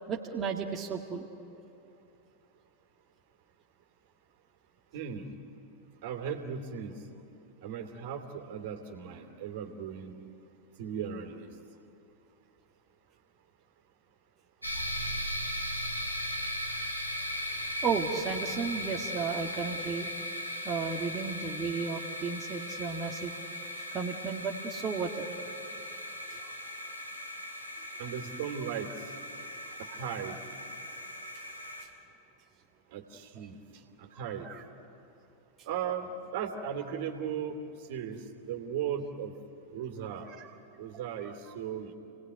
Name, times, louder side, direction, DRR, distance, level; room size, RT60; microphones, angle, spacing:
voice 1, 0.1-1.3 14.8-14.9 17.8-20.1 20.6-23.3 23.9-25.2 26.3-26.5 34.1-34.6 40.3-40.5 41.2-41.6, right 5 dB, 25° right, -1 dB, 1.9 m, -34 dB
voice 2, 4.9-5.3 6.0-7.0 7.6-10.2 10.8-11.5 28.0-29.1 29.8-30.4 32.9-34.5 35.6-37.6 37.9-39.3 39.7-40.3 40.8-41.9, right 8 dB, 50° right, 4 dB, 2.7 m, -37 dB
sound 1, 14.6-31.9, left 1 dB, 90° left, 3.7 m, -38 dB
29.5 x 19.0 x 9.4 m, 2.8 s
figure-of-eight pair, 90°, 0 cm